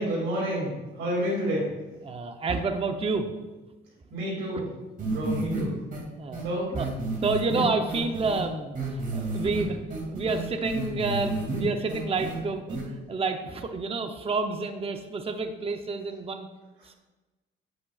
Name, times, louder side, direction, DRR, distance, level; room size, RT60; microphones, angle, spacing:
voice 1, 0.0-1.7 4.1-4.7 5.1-5.8 6.4-6.7, equal, 85° right, -5 dB, 2.4 m, -29 dB
voice 2, 2.0-3.3 6.2-6.4 6.7-6.9 7.2-16.5 16.8-17.0, right 3 dB, 30° right, 6 dB, 0.7 m, -29 dB
sound 1, 5.0-5.6 5.9-6.0 6.3-6.4 6.8-8.4 8.7-9.6 9.9-11.6 11.9-12.4 12.7-12.8, right 2 dB, 45° right, 2.5 m, -31 dB
8.2 x 7.8 x 2.4 m, 1.1 s
cardioid pair, 90°, 20 cm